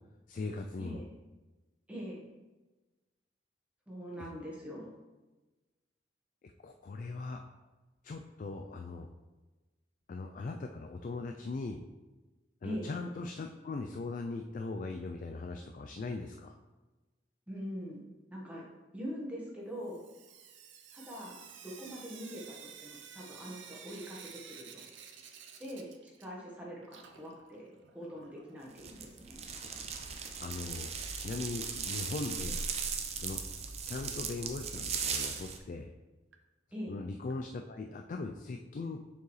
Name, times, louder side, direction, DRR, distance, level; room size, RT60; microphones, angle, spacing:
voice 1, 0.3-1.0 4.2-4.3 6.6-7.4 8.0-9.1 10.1-11.8 12.6-16.6 30.4-32.6 33.2-33.4 33.9-35.9 36.9-39.0, left 3 dB, 45° left, 4 dB, 0.3 m, -39 dB
voice 2, 1.9-2.2 3.9-4.9 12.6-12.9 17.5-18.0 18.3-18.7 18.9-20.0 20.9-24.8 25.6-27.7 27.9-29.5 36.7-36.9, equal, 5° right, -4 dB, 1.3 m, -43 dB
Sink (filling or washing) / Drip, 19.8-26.6 26.8-28.8 29.9-30.0 30.3-30.4 30.7-30.8 33.7-33.8 34.3-34.4 34.9-35.0 35.6-35.7 36.3-36.4 37.3-37.4, right 7 dB, 85° right, 0.6 m, -52 dB
sound 1, 28.8-35.6, right 6 dB, 35° right, 0.5 m, -38 dB
6.7 x 4.6 x 3.2 m, 1.2 s
head